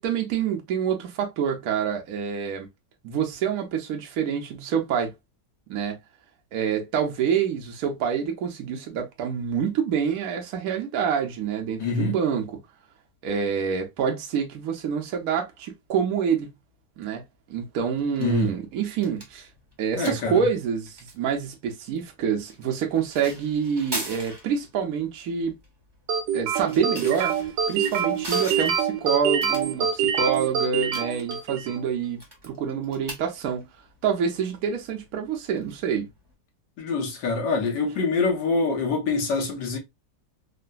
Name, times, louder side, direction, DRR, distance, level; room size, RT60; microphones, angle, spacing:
voice 1, 0.0-2.7 3.0-5.1 5.7-6.0 6.5-12.6 13.2-16.5 17.0-17.2 17.5-19.5 19.8-25.5 26.3-27.4 27.7-33.7 34.0-36.1, right 7 dB, 65° right, 1.1 m, -27 dB
voice 2, 11.8-12.2 18.2-18.5 20.0-20.4 36.8-39.8, left 4 dB, 70° left, 1.6 m, -25 dB
sound 1, 18.0-36.3, right 1 dB, 20° right, 0.8 m, -43 dB
sound 2, 26.1-31.8, right 7 dB, 85° right, 1.3 m, -25 dB
3.8 x 2.1 x 2.3 m
omnidirectional pair, 1.9 m